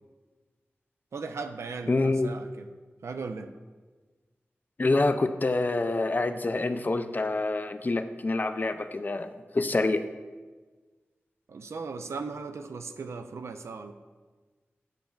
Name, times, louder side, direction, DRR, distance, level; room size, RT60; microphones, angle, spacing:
voice 1, 1.1-2.7 3.0-3.5 11.5-13.9, right 4 dB, 80° right, 7 dB, 0.4 m, -37 dB
voice 2, 1.9-2.3 4.8-10.0, left 2 dB, 40° left, 9 dB, 0.3 m, -26 dB
9.0 x 5.0 x 2.3 m, 1.4 s
cardioid pair, 50°, 5 cm